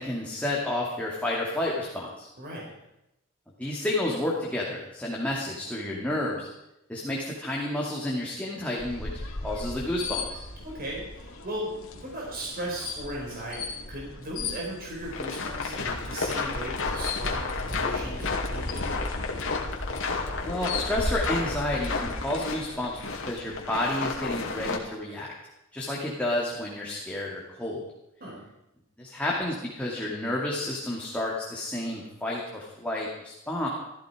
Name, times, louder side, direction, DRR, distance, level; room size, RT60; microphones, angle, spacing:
voice 1, 0.0-2.3 3.6-6.5 6.9-10.4 20.4-22.9 23.2-25.3 25.7-27.8 29.0-33.7, left 1 dB, 5° left, -4 dB, 2.4 m, -30 dB
voice 2, 2.4-2.7 10.6-19.0 28.2-28.5, right 1 dB, 45° right, -3 dB, 4.9 m, -37 dB
sound 1, 8.8-24.7, left 2 dB, 80° left, 2.3 m, -37 dB
sound 2, 15.0-24.8, left 4 dB, 65° left, 2.5 m, -32 dB
15.5 x 14.5 x 5.0 m, 0.88 s
head